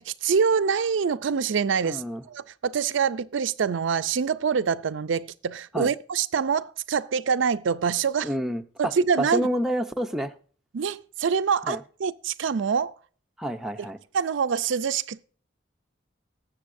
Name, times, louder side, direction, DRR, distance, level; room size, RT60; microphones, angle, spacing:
voice 1, 0.0-8.3 8.8-9.5 10.7-12.9 14.1-15.3, right 6 dB, 70° right, 0.4 m, -25 dB
voice 2, 1.8-2.2 5.7-5.9 8.2-8.9 9.2-10.3 11.6-11.8 13.4-14.0, equal, ahead, 0.6 m, -28 dB
19.0 x 7.6 x 2.6 m
head